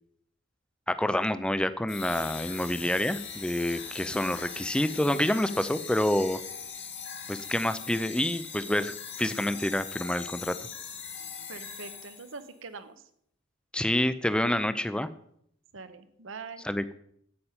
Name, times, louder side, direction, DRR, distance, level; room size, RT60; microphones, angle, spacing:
voice 1, 0.9-6.4 7.3-10.5 13.7-15.1 16.6-16.9, left 1 dB, 5° left, 13 dB, 0.4 m, -28 dB
sound 1, 1.9-12.4, left 6 dB, 60° left, 2.0 m, -41 dB
voice 2, 11.5-13.0 15.7-16.6, right 4 dB, 65° right, 11 dB, 0.9 m, -43 dB
8.7 x 8.3 x 5.6 m, 0.70 s
head